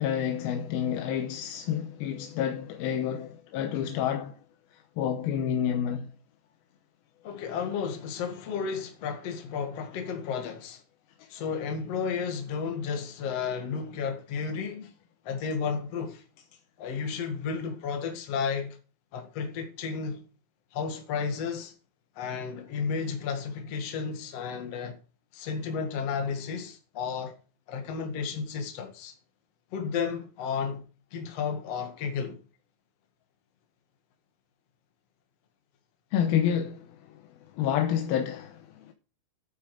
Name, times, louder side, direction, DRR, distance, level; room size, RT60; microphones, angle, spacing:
voice 1, 0.0-4.3 5.0-6.1 36.1-36.9 37.6-38.9, left 9 dB, 85° left, 2.8 m, -29 dB
voice 2, 7.2-10.8 11.3-14.9 15.2-16.2 16.8-18.8 19.1-20.2 20.7-21.7 22.2-25.0 25.3-27.3 27.7-29.1 29.7-30.8 31.1-32.4, left 6 dB, 50° left, 2.7 m, -32 dB
11.5 x 8.7 x 4.9 m
omnidirectional pair, 4.2 m